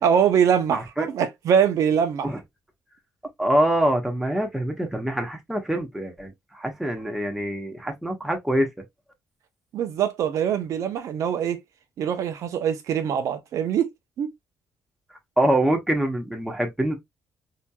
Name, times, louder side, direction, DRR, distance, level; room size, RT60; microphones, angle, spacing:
voice 1, 0.0-2.3 9.7-11.6 12.0-13.9 14.2-14.3, right 8 dB, 70° right, 0.8 m, -23 dB
voice 2, 0.7-1.1 2.2-2.4 3.4-8.7 15.4-17.0, right 1 dB, 5° right, 1.2 m, -25 dB
4.3 x 2.9 x 2.3 m
cardioid pair, 85°, 6 cm